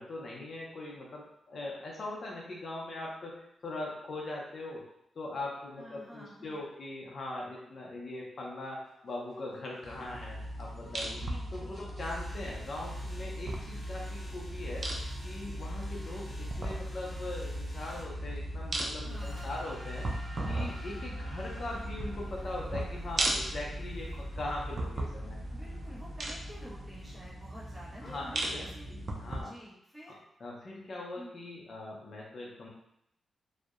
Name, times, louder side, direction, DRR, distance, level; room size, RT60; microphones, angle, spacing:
voice 1, 0.0-4.8 5.1-11.2 11.5-14.8 15.2-20.1 20.4-25.4 28.0-29.5 30.4-32.7, left 2 dB, 55° left, -3 dB, 0.5 m, -41 dB
voice 2, 5.8-6.6 11.1-11.8 19.0-19.6 25.5-28.9 29.4-30.2 31.1-31.3, equal, 15° right, -8 dB, 1.0 m, -50 dB
sound 1, 8.4-27.3, equal, 30° right, 1.4 m, -47 dB
sound 2, 9.8-29.4, right 1 dB, 45° right, 0.4 m, -38 dB
2.6 x 2.0 x 2.4 m, 0.77 s
cardioid pair, 105°, 0 cm